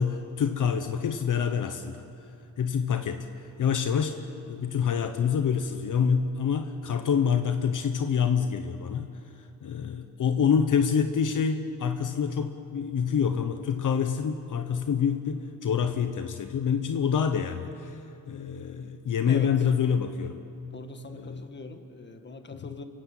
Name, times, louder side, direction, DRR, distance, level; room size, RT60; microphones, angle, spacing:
voice 1, 0.0-2.0 2.6-3.3 3.6-9.1 9.6-18.0 18.3-20.4 21.1-21.5, left 7 dB, 65° left, 7 dB, 1.1 m, -26 dB
voice 2, 19.3-19.7 20.7-22.8, left 4 dB, 30° left, 7 dB, 1.6 m, -42 dB
28.0 x 16.0 x 8.3 m, 2.8 s
cardioid pair, 120°, 34 cm